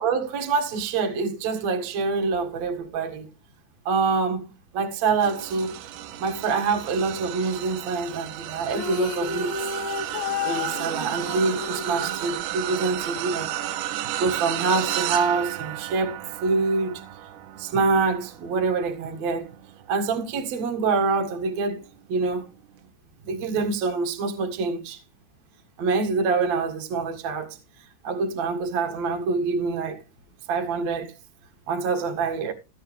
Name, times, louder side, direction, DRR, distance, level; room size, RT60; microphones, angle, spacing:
voice 1, 0.0-3.3 3.9-4.5 4.7-5.8 6.2-9.5 10.4-13.5 14.2-17.0 17.6-19.5 19.9-21.8 22.1-22.5 23.2-25.0 25.8-27.6 28.0-30.0 30.5-31.2 31.7-32.5, right 4 dB, 60° right, 1.9 m, -25 dB
sound 1, 5.2-20.7 21.2-21.5 22.7-22.8, right 12 dB, 80° right, 2.6 m, -33 dB
sound 2, 8.7-13.0, left 7 dB, 80° left, 3.1 m, -32 dB
16.0 x 8.5 x 3.6 m
omnidirectional pair, 5.9 m